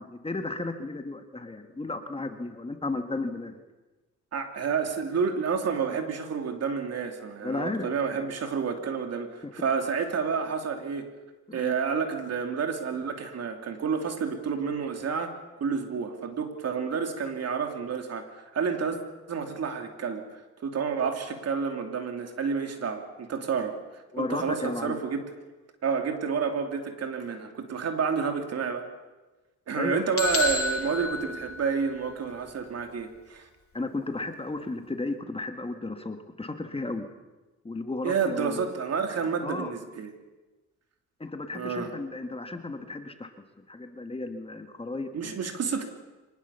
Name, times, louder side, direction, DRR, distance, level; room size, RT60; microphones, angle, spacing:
voice 1, 0.0-3.6 7.4-7.9 9.4-9.5 11.5-11.7 24.1-25.0 29.7-30.1 33.7-37.1 37.6-38.7 39.4-39.7 41.2-43.3 43.7-45.4, left 2 dB, 20° left, 6 dB, 1.9 m, -34 dB
voice 2, 4.3-11.1 11.5-19.0 19.3-25.2 25.8-28.9 29.7-33.5 38.0-40.1 41.5-42.0 45.1-45.8, right 6 dB, 55° right, 5 dB, 3.0 m, -30 dB
sound 1, 30.2-32.1, left 2 dB, 45° left, 2.8 m, -30 dB
24.0 x 19.5 x 7.1 m, 1.2 s
cardioid pair, 90°, 30 cm